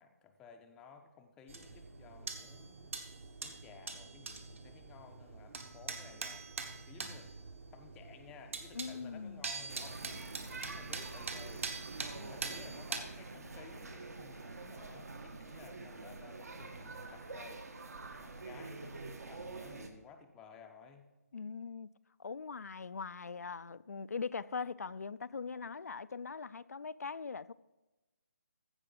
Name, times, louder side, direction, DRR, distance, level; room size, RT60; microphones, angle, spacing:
voice 1, 0.0-2.9 3.4-6.5 6.8-7.3 7.7-11.7 12.2-17.6 18.2-21.1, left 6 dB, 10° left, 0.5 m, -56 dB
sound 1, 1.5-13.0, right 4 dB, 55° right, 1.3 m, -44 dB
voice 2, 8.7-9.5 21.3-21.9 22.2-27.5, left 5 dB, 70° left, 0.4 m, -41 dB
sound 2, 9.7-19.9, right 3 dB, 70° right, 1.4 m, -46 dB
15.0 x 5.0 x 5.4 m
figure-of-eight pair, 155°, 9 cm